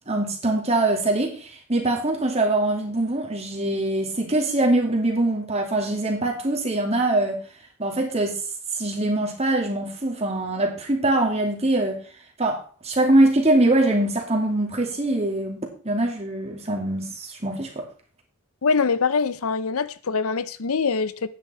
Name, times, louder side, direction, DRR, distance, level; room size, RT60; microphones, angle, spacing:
voice 1, 0.1-7.4 7.8-8.4 8.7-12.0 12.4-15.6 15.8-17.7, right 2 dB, 30° right, 2.6 m, -23 dB
voice 2, 18.6-21.3, left 5 dB, 75° left, 0.7 m, -23 dB
10.5 x 9.5 x 4.4 m
head